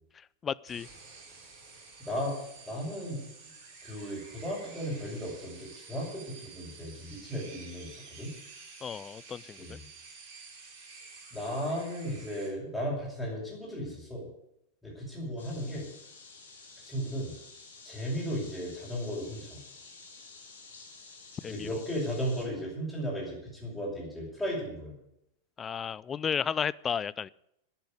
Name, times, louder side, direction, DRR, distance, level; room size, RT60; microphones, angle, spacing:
voice 1, 0.4-0.9 8.8-9.8 21.4-21.8 25.6-27.3, left 7 dB, 20° left, 21 dB, 0.4 m, -33 dB
sound 1, 0.7-12.5, right 4 dB, 50° right, 5.3 m, -50 dB
voice 2, 2.1-3.3 3.8-8.3 9.6-9.9 11.3-14.3 14.8-15.9 16.8-17.3 17.8-19.6 21.4-25.0, equal, 5° left, -8 dB, 6.2 m, -35 dB
sound 2, 15.4-22.5, left 4 dB, 65° left, 3.8 m, -51 dB
10.5 x 10.0 x 9.5 m, 0.79 s
figure-of-eight pair, 90°, 0 cm